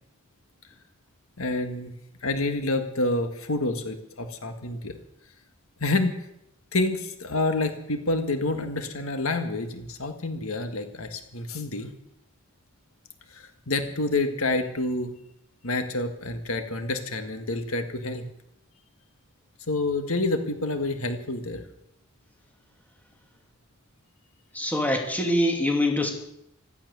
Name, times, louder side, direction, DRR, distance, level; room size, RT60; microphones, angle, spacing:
voice 1, 1.4-1.9 2.2-5.0 5.8-6.2 6.7-11.9 13.3-15.1 15.6-18.2 19.7-21.6, left 2 dB, 75° left, 7 dB, 1.7 m, -28 dB
voice 2, 24.5-26.1, left 1 dB, 10° left, 2 dB, 2.7 m, -24 dB
15.5 x 13.5 x 6.9 m, 0.79 s
head